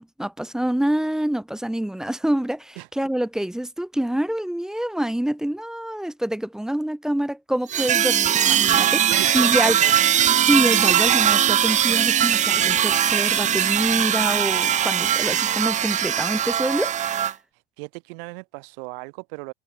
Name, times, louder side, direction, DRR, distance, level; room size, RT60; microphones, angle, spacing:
voice 1, 0.0-9.0 9.3-9.8 10.3-16.9, right 1 dB, ahead, 0.7 m, -26 dB
sound 1, 7.7-17.3, right 10 dB, 25° right, 1.4 m, -20 dB
voice 2, 9.1-9.9 17.8-19.5, right 30 dB, 65° right, 3.4 m, -36 dB
supercardioid pair, 160°, 29 cm